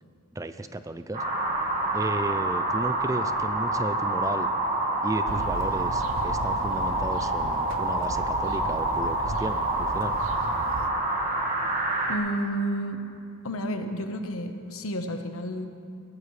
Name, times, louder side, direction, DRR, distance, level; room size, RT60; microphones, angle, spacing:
voice 1, 0.3-1.2 1.9-4.5 5.0-10.2, right 2 dB, 15° right, 11 dB, 0.3 m, -34 dB
sound 1, 1.1-12.1, right 2 dB, 35° right, 1.7 m, -27 dB
sound 2, 5.3-10.9, right 3 dB, 65° right, 0.6 m, -36 dB
voice 2, 12.1-13.0 13.4-15.6, right 1 dB, 70° left, 6 dB, 1.1 m, -31 dB
20.0 x 16.0 x 3.3 m, 2.5 s
head